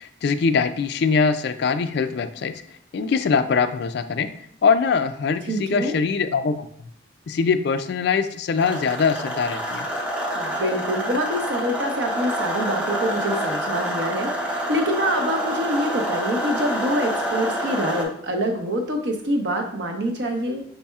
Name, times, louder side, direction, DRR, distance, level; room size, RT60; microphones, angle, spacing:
voice 1, 0.0-2.5 2.9-4.3 4.6-6.7 7.3-9.9, left 5 dB, 55° left, 10 dB, 0.3 m, -22 dB
voice 2, 5.5-6.0 10.3-20.6, equal, 60° right, 3 dB, 0.8 m, -26 dB
sound 1, 8.6-18.0, equal, 5° right, 0.6 m, -27 dB
5.4 x 4.1 x 2.3 m, 0.66 s
head